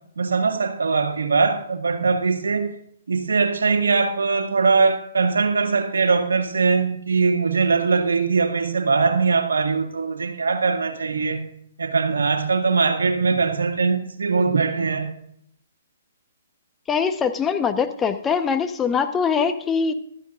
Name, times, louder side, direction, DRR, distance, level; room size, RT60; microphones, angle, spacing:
voice 1, 0.2-2.7 3.1-11.4 11.8-15.1, right 4 dB, 85° right, 2.0 m, -21 dB
voice 2, 16.9-19.9, left 6 dB, 15° left, 1.0 m, -22 dB
16.0 x 13.5 x 2.5 m
hypercardioid pair, 135°, 0 cm